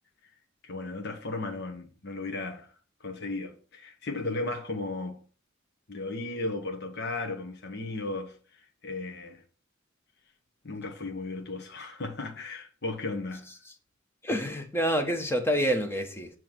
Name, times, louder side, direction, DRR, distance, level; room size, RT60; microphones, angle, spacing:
voice 1, 0.6-2.7 3.0-5.2 5.9-9.4 10.6-13.5, left 2 dB, 55° left, 1.1 m, -35 dB
voice 2, 14.2-16.3, equal, 10° left, 1.0 m, -27 dB
7.1 x 3.1 x 6.0 m
head